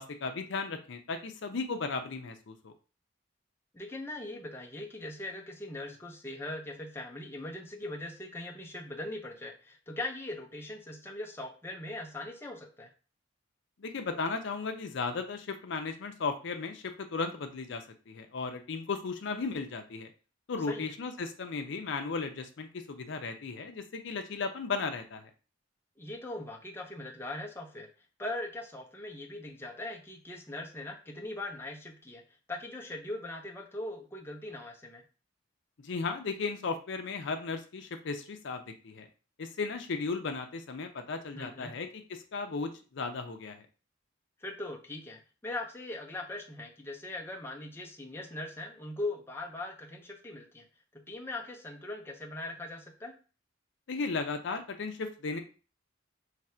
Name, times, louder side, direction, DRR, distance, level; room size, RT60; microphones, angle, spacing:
voice 1, 0.0-2.7 13.8-20.1 20.5-25.3 35.8-39.1 39.4-43.6 53.9-55.4, left 4 dB, 65° left, 6 dB, 0.5 m, -35 dB
voice 2, 3.7-12.9 20.7-20.9 26.0-27.9 28.2-32.2 32.5-35.0 41.3-41.8 44.4-50.6 50.9-53.1, left 2 dB, 10° left, 1 dB, 0.5 m, -40 dB
3.2 x 2.5 x 4.3 m, 0.35 s
head